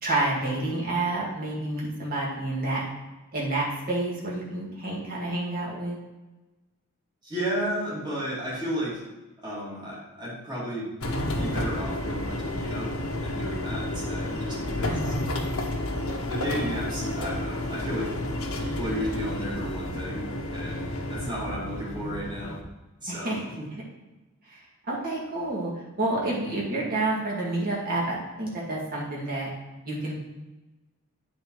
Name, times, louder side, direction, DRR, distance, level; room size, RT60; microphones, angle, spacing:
voice 1, 0.0-2.9 3.3-6.0 14.8-15.4 23.1-23.4 24.5-24.6 24.9-25.7 26.0-29.5 29.9-30.1, right 2 dB, 40° right, -4 dB, 2.1 m, -29 dB
voice 2, 7.2-9.0 9.4-11.0 11.4-12.9 13.2-15.1 16.2-18.3 18.6-22.6 23.0-23.7, equal, 20° right, -7 dB, 2.5 m, -33 dB
sound 1, 11.0-22.6, left 1 dB, 70° left, 1.0 m, -31 dB
8.5 x 4.2 x 4.7 m, 1.1 s
head